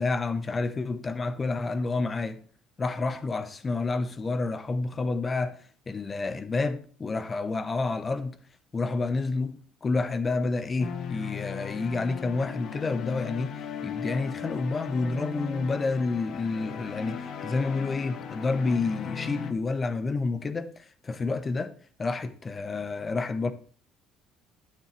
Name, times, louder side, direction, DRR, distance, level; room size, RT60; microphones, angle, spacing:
voice 1, 0.0-2.4 2.8-5.6 5.9-8.4 8.7-21.7 22.0-23.5, left 3 dB, 25° left, 0.9 m, -29 dB
sound 1, 10.8-19.5, left 7 dB, 55° left, 0.9 m, -37 dB
9.4 x 9.3 x 3.3 m
supercardioid pair, 95°, 0 cm